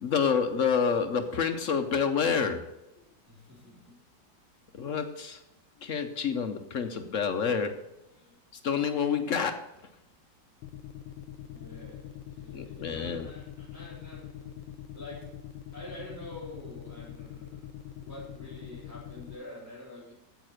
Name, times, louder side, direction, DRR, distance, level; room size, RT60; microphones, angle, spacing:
voice 1, 0.0-2.7 4.7-5.4 5.8-7.8 8.6-9.7 12.5-13.3, left 6 dB, 60° left, 8 dB, 0.9 m, -28 dB
voice 2, 3.3-4.0 11.5-15.4 15.7-20.1, left 1 dB, 10° right, -8 dB, 3.5 m, -47 dB
sound 1, 10.6-19.3, left 11 dB, 85° left, 1.4 m, -43 dB
9.1 x 8.2 x 6.4 m, 0.93 s
omnidirectional pair, 1.9 m